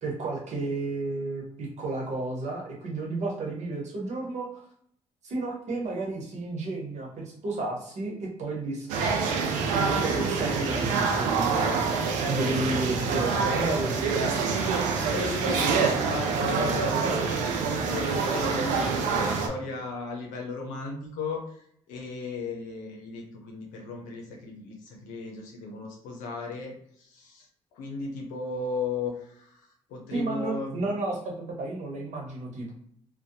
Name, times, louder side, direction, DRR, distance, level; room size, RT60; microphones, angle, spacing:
voice 1, 0.0-4.6 5.2-8.9 9.4-11.9 12.3-14.0 16.6-16.8 30.1-32.7, right 2 dB, 65° right, -1 dB, 1.0 m, -32 dB
sound 1, 8.9-19.5, right 5 dB, 90° right, 0.4 m, -26 dB
voice 2, 12.0-12.8 14.2-26.7 27.0-27.5 27.7-29.6 29.9-30.9, left 3 dB, 90° left, 0 dB, 0.6 m, -36 dB
2.7 x 2.2 x 2.5 m, 0.67 s
supercardioid pair, 65°, 13 cm